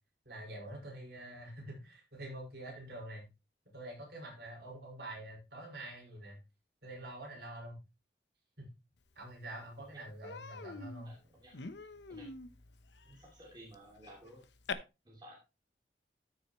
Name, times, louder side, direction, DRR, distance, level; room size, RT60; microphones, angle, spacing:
voice 1, 0.3-3.3 3.7-6.4 6.8-7.8 8.6-8.7 9.2-11.1, right 1 dB, 60° right, -1 dB, 5.3 m, -46 dB
Human voice, 9.2-9.3 9.6-9.8 10.2-14.7, left 4 dB, 75° left, 0.9 m, -46 dB
voice 2, 11.0-11.7 12.1-12.3 13.1-14.4 15.0-15.4, right 1 dB, 25° right, -2 dB, 2.6 m, -55 dB
13.5 x 6.4 x 3.1 m, 0.26 s
head